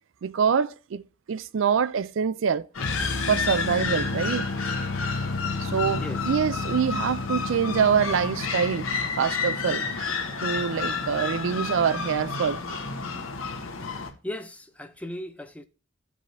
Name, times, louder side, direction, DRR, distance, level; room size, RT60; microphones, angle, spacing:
voice 1, 0.2-1.0 1.3-2.7 3.3-4.5 5.6-8.9 9.2-10.1 10.4-12.8, right 7 dB, 65° right, 0.4 m, -25 dB
sound 1, 2.7-14.1, left 4 dB, 90° left, 1.3 m, -31 dB
sound 2, 2.8-9.2, left 3 dB, 55° left, 0.7 m, -32 dB
voice 2, 14.2-15.6, left 1 dB, 5° left, 0.5 m, -37 dB
14.5 x 5.0 x 2.6 m
head